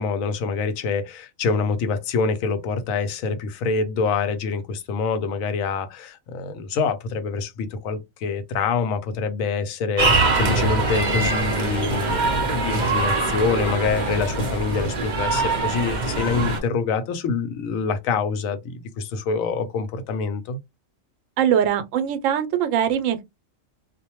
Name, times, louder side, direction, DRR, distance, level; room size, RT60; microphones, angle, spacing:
voice 1, 0.0-20.6, left 5 dB, 85° left, 1.0 m, -26 dB
sound 1, 10.0-16.6, right 3 dB, 45° right, 0.6 m, -23 dB
voice 2, 21.4-23.2, right 9 dB, 80° right, 0.9 m, -21 dB
2.4 x 2.1 x 2.9 m
omnidirectional pair, 1.4 m